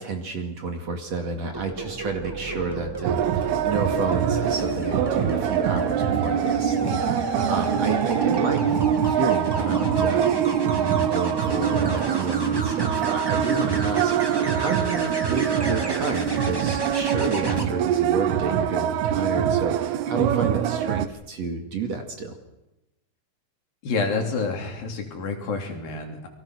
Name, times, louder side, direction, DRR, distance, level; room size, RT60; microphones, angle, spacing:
voice 1, 0.0-7.0 7.5-22.3, right 4 dB, 50° right, 4 dB, 3.1 m, -31 dB
sound 1, 1.5-17.6 19.6-19.8, right 1 dB, 15° right, 0.9 m, -32 dB
sound 2, 3.0-21.1, right 9 dB, 85° right, 3.0 m, -24 dB
voice 2, 23.8-26.3, left 4 dB, 65° left, 3 dB, 4.9 m, -28 dB
29.5 x 23.0 x 6.2 m, 0.95 s
omnidirectional pair, 4.4 m